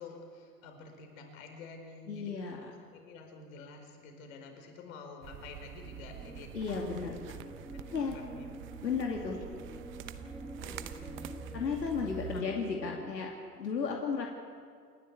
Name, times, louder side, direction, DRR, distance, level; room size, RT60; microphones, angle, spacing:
voice 1, 0.0-2.4 2.8-7.3 7.7-8.5 10.6-11.7 12.3-12.4, left 3 dB, 55° left, 4 dB, 4.8 m, -49 dB
voice 2, 2.1-2.7 6.5-7.2 7.9-8.2 8.8-9.4 11.5-14.3, left 5 dB, 85° left, 1 dB, 2.6 m, -34 dB
sound 1, 5.2-12.4, right 8 dB, 25° right, 0.9 m, -46 dB
sound 2, 5.8-13.1, right 1 dB, ahead, 1.3 m, -48 dB
28.5 x 11.5 x 8.4 m, 2.1 s
hypercardioid pair, 115°, 49 cm